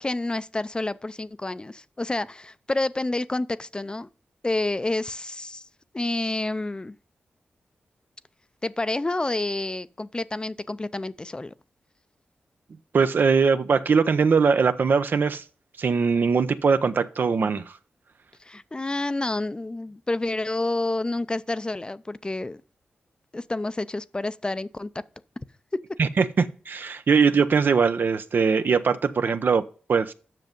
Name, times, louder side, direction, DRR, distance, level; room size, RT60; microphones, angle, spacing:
voice 1, 0.0-4.1 4.4-5.7 5.9-6.9 8.6-11.5 18.4-22.6 23.3-24.9, left 2 dB, 25° left, 0.5 m, -29 dB
voice 2, 12.9-15.4 15.8-17.7 26.0-30.1, right 5 dB, 65° right, 0.6 m, -21 dB
7.6 x 6.1 x 5.2 m
cardioid pair, 55°, 4 cm